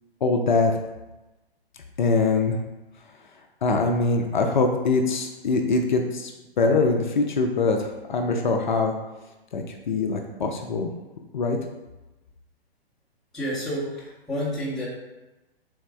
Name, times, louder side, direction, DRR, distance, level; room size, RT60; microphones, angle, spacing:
voice 1, 0.2-0.7 2.0-2.6 3.6-6.3 6.6-8.9 9.5-10.9 11.3-11.6, left 3 dB, 50° left, 3 dB, 0.4 m, -23 dB
voice 2, 13.3-14.9, equal, ahead, -10 dB, 0.5 m, -29 dB
3.5 x 3.2 x 3.2 m, 1.1 s
figure-of-eight pair, 120°, 31 cm